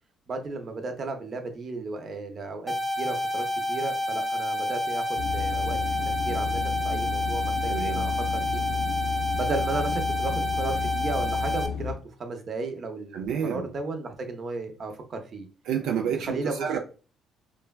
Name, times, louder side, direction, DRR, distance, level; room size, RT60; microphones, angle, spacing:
voice 1, 0.3-8.6 9.3-11.9 12.2-15.5 16.2-16.7, right 3 dB, 45° right, 5 dB, 0.6 m, -34 dB
sound 1, 2.7-11.7, left 1 dB, 5° right, 0.5 m, -29 dB
sound 2, 5.2-11.9, left 7 dB, 80° left, 0.4 m, -32 dB
voice 2, 7.7-8.1 13.1-13.7 15.7-16.8, right 8 dB, 85° right, 2 dB, 0.3 m, -29 dB
3.2 x 2.2 x 2.2 m, 0.35 s
cardioid pair, 90°, 0 cm